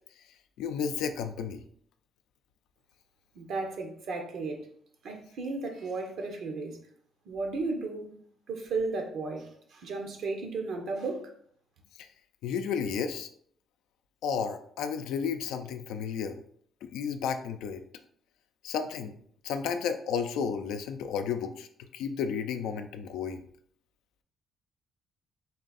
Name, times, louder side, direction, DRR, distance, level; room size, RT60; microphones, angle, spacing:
voice 1, 0.6-1.6 12.0-12.1 12.4-13.3 14.2-16.4 16.8-17.8 18.6-19.1 19.4-23.4, left 6 dB, 90° left, 7 dB, 0.4 m, -32 dB
voice 2, 3.3-4.7 5.0-6.8 7.2-8.2 8.5-11.3, right 3 dB, 70° right, 4 dB, 0.9 m, -34 dB
4.0 x 2.5 x 4.0 m, 0.63 s
cardioid pair, 90°, 0 cm